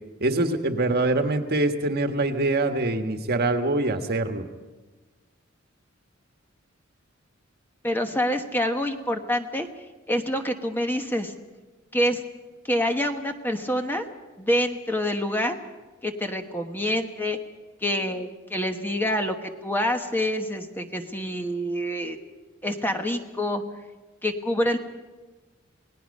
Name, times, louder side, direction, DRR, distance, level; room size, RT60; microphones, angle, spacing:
voice 1, 0.2-4.4, right 2 dB, 50° right, 6 dB, 1.5 m, -24 dB
voice 2, 7.8-9.7 10.1-11.3 11.9-12.2 12.6-14.0 14.4-15.6 16.0-17.4 17.8-22.2 22.6-23.6 24.2-24.8, equal, 10° left, 5 dB, 1.2 m, -26 dB
28.0 x 19.0 x 5.4 m, 1.2 s
head